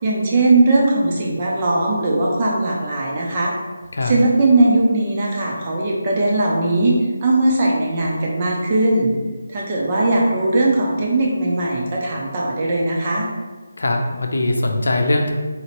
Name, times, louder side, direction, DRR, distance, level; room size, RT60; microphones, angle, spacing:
voice 1, 0.0-3.5 4.0-9.1 9.5-13.3, right 2 dB, 20° right, -3 dB, 0.6 m, -19 dB
voice 2, 13.8-15.3, left 2 dB, 70° left, 3 dB, 0.6 m, -20 dB
4.2 x 3.0 x 2.9 m, 1.3 s
figure-of-eight pair, 175°, 0 cm